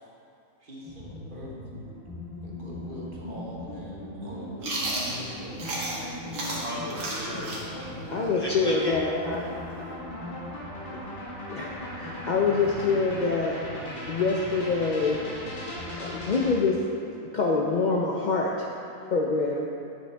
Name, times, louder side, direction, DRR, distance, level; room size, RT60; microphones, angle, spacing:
voice 1, 0.6-1.5 2.4-5.7, equal, 40° right, -5 dB, 1.3 m, -44 dB
sound 1, 0.8-16.6, left 1 dB, 40° left, 1.7 m, -38 dB
Chewing mastication, 4.6-6.0 6.3-9.9, right 1 dB, 75° right, 1.7 m, -33 dB
voice 2, 6.3-8.1 8.3-9.0, equal, 20° left, -6 dB, 1.0 m, -35 dB
voice 3, 8.1-9.4 10.9-11.0 11.5-13.6 14.1-15.2 16.0-18.7 19.1-19.7, left 4 dB, 75° left, -2 dB, 0.4 m, -26 dB
10.0 x 5.8 x 3.4 m, 2.6 s
omnidirectional pair, 1.4 m